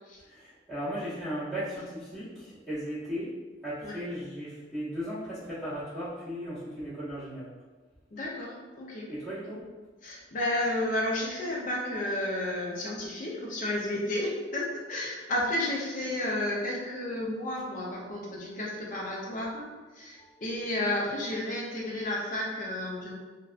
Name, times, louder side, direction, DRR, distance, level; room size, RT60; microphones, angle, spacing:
voice 1, 0.3-3.3 3.6-7.4 9.1-9.6 20.2-20.4, equal, ahead, -18 dB, 0.8 m, -36 dB
voice 2, 8.1-9.1 10.0-23.1, left 1 dB, 45° left, -3 dB, 0.5 m, -32 dB
2.7 x 2.1 x 2.3 m, 1.3 s
head